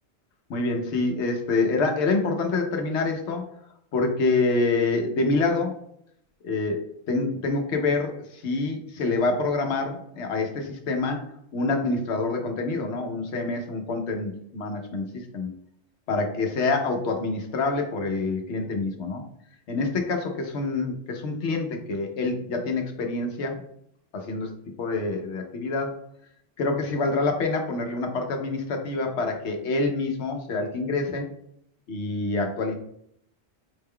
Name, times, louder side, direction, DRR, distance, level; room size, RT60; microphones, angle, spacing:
voice 1, 0.5-3.4 3.9-5.8 6.4-15.5 16.1-19.2 19.7-23.6 24.1-24.5 24.8-26.0 26.6-31.3 31.9-32.7, left 3 dB, 80° left, 3 dB, 1.0 m, -26 dB
5.6 x 2.2 x 3.6 m, 0.71 s
omnidirectional pair, 1.1 m